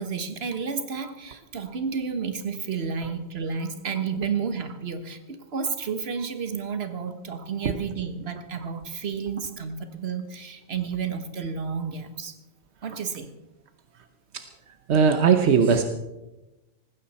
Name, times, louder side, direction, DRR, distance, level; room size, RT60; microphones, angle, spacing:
voice 1, 0.0-12.3 12.8-13.3, right 6 dB, 70° right, 8 dB, 1.6 m, -31 dB
voice 2, 14.9-15.8, right 6 dB, 85° right, 7 dB, 1.2 m, -19 dB
19.0 x 15.5 x 4.3 m, 1.0 s
omnidirectional pair, 1.1 m